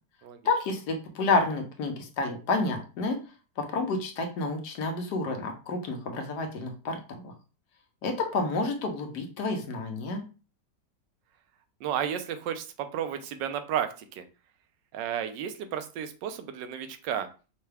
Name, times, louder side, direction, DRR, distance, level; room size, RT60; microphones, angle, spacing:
voice 1, 0.4-3.2 3.6-7.3 8.0-10.2, left 3 dB, 70° left, 4 dB, 1.3 m, -29 dB
voice 2, 11.8-14.2 14.9-17.3, right 9 dB, 85° right, 9 dB, 1.2 m, -32 dB
5.7 x 2.2 x 3.3 m, 0.34 s
omnidirectional pair, 1.9 m